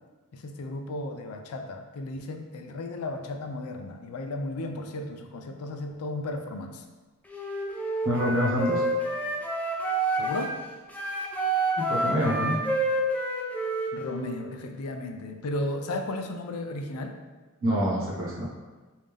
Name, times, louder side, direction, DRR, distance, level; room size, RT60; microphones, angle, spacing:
voice 1, 0.3-6.8 10.1-10.5 13.9-17.1, left 2 dB, 75° left, 5 dB, 0.4 m, -34 dB
Wind instrument woodwind instrument, 7.3-10.5 10.9-14.3, right 2 dB, 5° left, 0.3 m, -28 dB
voice 2, 8.0-8.8 11.8-12.6 17.6-18.4, equal, 60° right, -5 dB, 1.1 m, -26 dB
3.4 x 2.6 x 3.4 m, 1.3 s
head